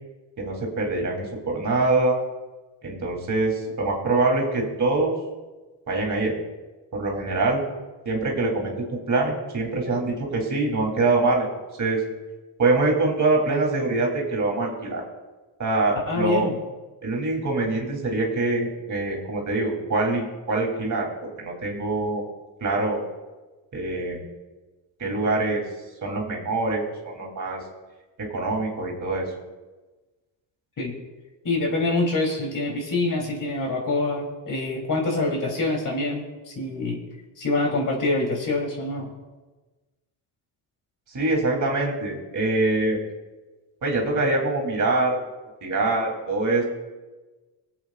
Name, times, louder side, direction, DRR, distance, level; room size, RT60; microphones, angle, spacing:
voice 1, 0.4-2.2 2.8-5.1 5.9-6.3 6.9-7.6 8.0-11.5 11.8-12.0 12.6-15.0 15.6-16.5 17.0-21.1 21.4-22.2 22.6-23.0 23.7-24.3 25.0-25.6 26.0-27.6 28.3-29.3 41.1-43.0 43.8-45.2 45.6-46.6, right 2 dB, 40° right, -1 dB, 3.2 m, -24 dB
voice 2, 9.7-10.1 16.1-16.5 30.8-30.9 31.4-37.0 37.4-39.1, left 2 dB, 40° left, -1 dB, 3.3 m, -26 dB
23.5 x 8.2 x 2.5 m, 1.2 s
cardioid pair, 85°, 47 cm